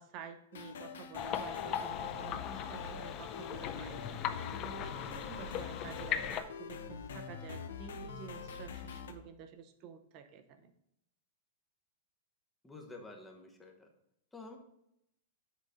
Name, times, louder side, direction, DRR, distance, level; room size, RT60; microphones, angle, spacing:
voice 1, 0.0-10.7, right 7 dB, 35° right, 9 dB, 0.8 m, -50 dB
sound 1, 0.5-9.1, left 5 dB, 80° left, 0.9 m, -45 dB
sound 2, 1.2-6.4, left 10 dB, 30° left, 0.4 m, -39 dB
voice 2, 12.6-13.9 14.3-14.6, left 2 dB, 5° left, 1 dB, 1.1 m, -50 dB
7.5 x 4.1 x 5.1 m, 0.78 s
supercardioid pair, 150°, 0 cm